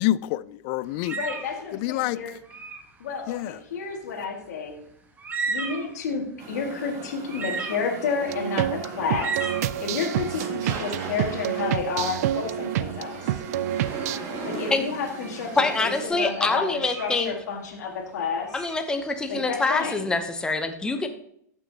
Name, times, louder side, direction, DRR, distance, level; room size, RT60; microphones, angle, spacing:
voice 1, 0.0-1.2 1.7-2.2 3.3-3.6 14.6-14.7, left 15 dB, 50° left, 0.4 m, -27 dB
sound 1, 1.0-1.6 2.4-2.9 4.8-4.9 5.2-6.0 6.6-6.7 7.2-8.1 9.1-9.7 13.0-13.3 14.0-14.4 15.0-15.4 16.0-17.3 18.4-19.5, right 4 dB, 20° right, 1.4 m, -34 dB
voice 2, 1.1-2.3 3.0-4.7 5.5-9.3 9.8-13.4 14.4-18.5 19.3-20.0, left 5 dB, 75° left, 2.0 m, -30 dB
sound 2, 6.4-16.1, right 3 dB, 45° right, 2.2 m, -38 dB
sound 3, 8.3-14.2, right 12 dB, 65° right, 0.4 m, -28 dB
voice 3, 15.6-17.3 18.5-21.1, left 3 dB, 10° left, 0.8 m, -25 dB
14.0 x 6.1 x 2.8 m
hypercardioid pair, 120°, 9 cm